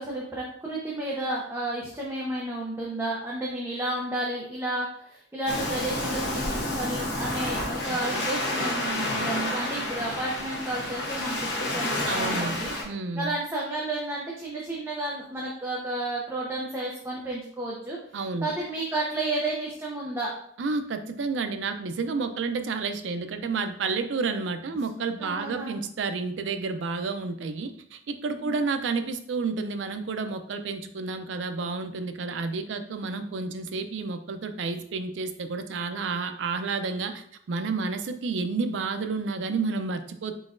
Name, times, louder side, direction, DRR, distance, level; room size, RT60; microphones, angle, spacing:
voice 1, 0.0-12.7 13.1-18.0 18.4-20.3 25.2-25.7 28.4-28.5, right 2 dB, 15° right, -4 dB, 0.6 m, -32 dB
Waves surf, 5.5-12.8, left 1 dB, 70° left, 0.9 m, -29 dB
voice 2, 12.1-12.6 12.8-13.3 18.1-18.5 20.6-40.3, right 4 dB, 85° right, 8 dB, 0.4 m, -30 dB
3.9 x 3.9 x 2.5 m, 0.65 s
head